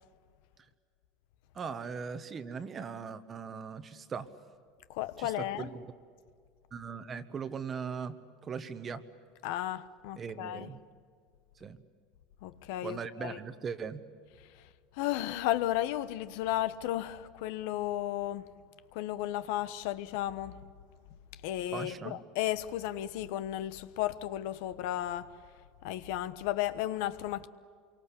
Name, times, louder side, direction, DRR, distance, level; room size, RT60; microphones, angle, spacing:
voice 1, 1.5-4.3 5.2-5.8 6.7-8.2 8.4-9.0 10.2-10.8 11.6-11.8 12.8-14.0 21.7-22.2, right 6 dB, 25° right, 1.3 m, -39 dB
voice 2, 4.9-5.8 9.4-10.7 12.4-13.4 14.4-14.7 14.9-18.6 18.9-20.6 21.4-25.4 25.8-27.5, left 13 dB, 70° left, 1.1 m, -34 dB
27.0 x 24.0 x 8.5 m
supercardioid pair, 150°, 0 cm